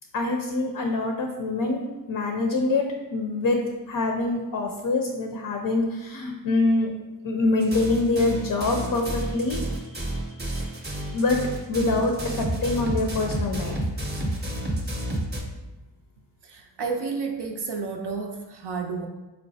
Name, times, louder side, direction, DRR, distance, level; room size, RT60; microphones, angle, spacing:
voice 1, 0.1-6.9 7.2-9.6 9.9-10.2 10.5-10.7 11.1-11.4 11.7-13.8, left 2 dB, 45° left, 3 dB, 0.5 m, -25 dB
sound 1, 7.6-15.4, right 1 dB, 20° right, 0.6 m, -30 dB
voice 2, 16.4-19.1, right 4 dB, 60° right, 2 dB, 0.5 m, -31 dB
4.0 x 2.1 x 2.6 m, 1.1 s
supercardioid pair, 40°, 48 cm